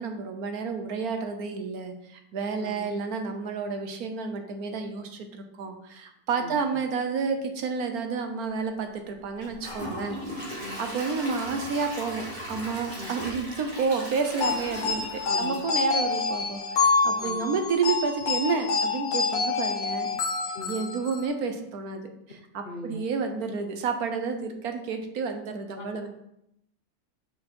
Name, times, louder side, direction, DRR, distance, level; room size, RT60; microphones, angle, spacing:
voice 1, 0.0-15.1 15.4-20.1 20.7-26.1, right 5 dB, 60° right, 6 dB, 1.3 m, -30 dB
voice 2, 2.6-2.9 6.4-6.6 10.6-10.8 13.0-13.1 15.2-15.6 17.2-17.5 20.5-20.8 22.6-23.0 25.8-26.1, left 2 dB, 45° left, 2 dB, 0.8 m, -40 dB
Gurgling / Toilet flush / Trickle dribble, 9.4-16.4 16.8-16.9 17.4-17.5, equal, 25° right, 2.0 m, -38 dB
sound 1, 14.4-21.3, left 4 dB, 90° left, 1.9 m, -27 dB
7.0 x 5.6 x 4.3 m, 0.79 s
omnidirectional pair, 2.0 m